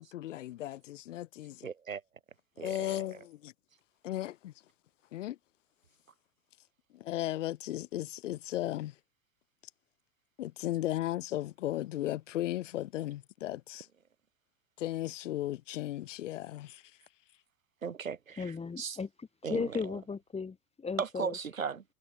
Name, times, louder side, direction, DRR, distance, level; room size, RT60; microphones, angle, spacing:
voice 1, 0.0-1.7 2.6-3.5 4.0-4.5 5.1-5.4 6.9-8.9 10.4-13.9 14.8-16.8, left 14 dB, 65° left, 5.1 m, -36 dB
voice 2, 1.6-2.0 2.6-3.1 17.8-18.4 18.8-19.0 19.4-19.7 21.0-21.8, right 6 dB, 85° right, 5.3 m, -36 dB
voice 3, 18.4-21.4, left 5 dB, 15° left, 5.9 m, -36 dB
hypercardioid pair, 100°, 39 cm